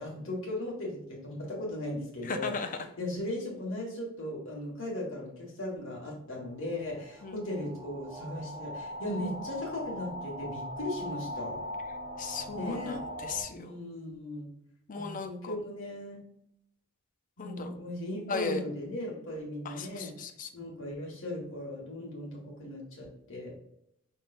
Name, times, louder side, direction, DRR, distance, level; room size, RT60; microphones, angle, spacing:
voice 1, 0.0-2.5 3.0-11.6 12.5-13.0 13.5-14.5 14.9-16.2 17.4-20.1 20.5-23.5, left 1 dB, 65° left, -2 dB, 1.8 m, -37 dB
voice 2, 2.2-2.8 7.2-7.4 12.2-13.8 14.9-15.6 17.4-17.8 18.3-18.6 19.6-20.5, left 4 dB, 40° left, 7 dB, 0.5 m, -36 dB
sound 1, 6.7-13.4, equal, 25° right, 0.7 m, -40 dB
5.3 x 3.6 x 2.6 m, 0.77 s
head